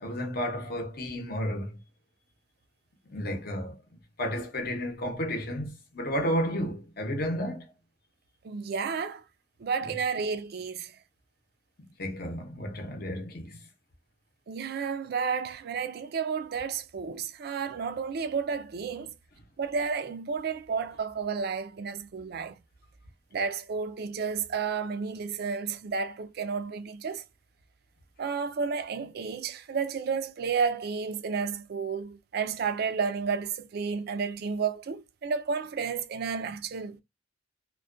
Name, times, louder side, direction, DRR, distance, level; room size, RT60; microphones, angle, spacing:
voice 1, 0.0-1.8 3.1-3.8 4.2-7.7 9.8-9.9 12.0-13.6, equal, 55° left, 0.7 m, -32 dB
voice 2, 8.4-9.2 9.6-10.9 14.5-19.1 19.6-22.6 23.3-27.2 28.2-37.0, right 5 dB, 55° right, 0.4 m, -31 dB
2.3 x 2.2 x 2.5 m
head